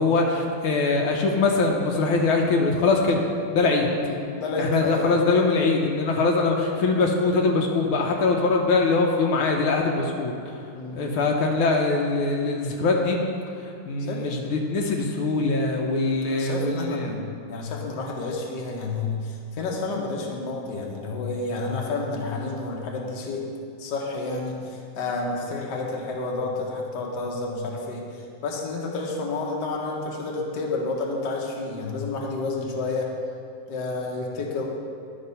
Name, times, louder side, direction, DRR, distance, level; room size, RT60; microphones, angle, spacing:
voice 1, 0.0-3.2 3.5-3.9 4.6-10.3 10.9-13.2 13.9-17.1, left 3 dB, 80° left, 1 dB, 1.6 m, -22 dB
voice 2, 4.0-5.1 10.7-11.1 14.0-14.2 16.3-23.5 23.8-28.1 28.4-33.1 33.7-34.7, left 3 dB, 60° left, -1 dB, 1.5 m, -30 dB
10.5 x 4.2 x 5.5 m, 2.4 s
omnidirectional pair, 2.3 m